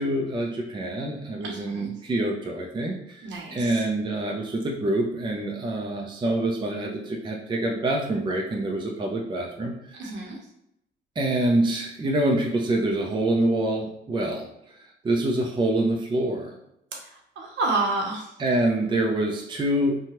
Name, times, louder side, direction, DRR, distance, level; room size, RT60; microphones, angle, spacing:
voice 1, 0.0-3.2 3.5-9.7 11.2-14.5 15.0-16.6 18.4-20.0, right 1 dB, 25° right, 0 dB, 0.5 m, -26 dB
voice 2, 1.5-1.9 3.2-3.7 10.0-10.4 17.4-18.2, right 3 dB, 65° right, 0 dB, 0.9 m, -28 dB
2.9 x 2.2 x 2.9 m, 0.80 s
cardioid pair, 90°, 20 cm